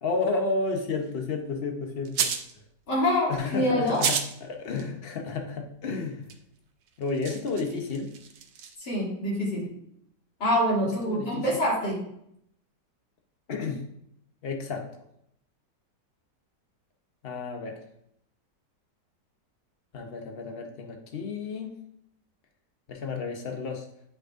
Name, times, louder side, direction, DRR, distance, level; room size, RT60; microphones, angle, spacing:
voice 1, 0.0-2.3 3.3-6.3 7.0-8.1 11.0-11.6 13.5-13.8 14.4-14.9 17.2-17.8 19.9-21.7 22.9-23.9, left 4 dB, 45° left, 3 dB, 0.9 m, -31 dB
sound 1, 2.0-2.5 3.9-4.3 4.7-4.8 6.3-6.4 6.9-8.7, right 7 dB, 80° right, 1.3 m, -30 dB
voice 2, 2.9-4.0 8.8-9.7 10.4-12.0, left 1 dB, 70° left, -7 dB, 3.2 m, -25 dB
8.7 x 5.2 x 2.5 m, 0.74 s
omnidirectional pair, 1.9 m